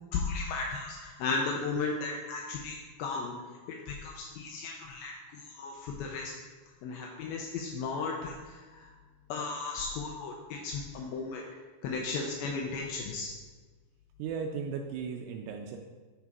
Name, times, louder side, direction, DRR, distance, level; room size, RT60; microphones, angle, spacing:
voice 1, 0.1-3.4 3.7-6.3 6.8-8.9 9.3-11.4 11.8-13.3, left 4 dB, 85° left, 0 dB, 2.2 m, -35 dB
voice 2, 14.2-15.8, right 6 dB, 85° right, 2 dB, 2.6 m, -36 dB
9.7 x 3.7 x 4.6 m, 1.4 s
omnidirectional pair, 4.8 m